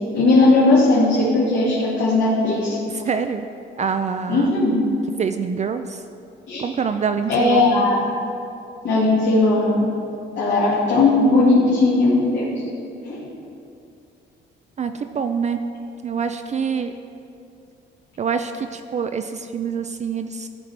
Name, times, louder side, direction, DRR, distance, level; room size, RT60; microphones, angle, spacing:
voice 1, 0.0-2.8 4.3-4.8 6.5-6.6 7.3-8.1 8.8-9.9 10.4-12.5 13.1-13.3, left 2 dB, 65° left, -8 dB, 1.9 m, -17 dB
voice 2, 2.9-3.5 3.8-4.6 5.2-6.0 6.6-7.9 14.8-15.6 16.0-16.9 18.2-20.5, right 6 dB, 35° right, 8 dB, 0.3 m, -25 dB
13.5 x 4.6 x 3.3 m, 2.6 s
cardioid pair, 90°, 20 cm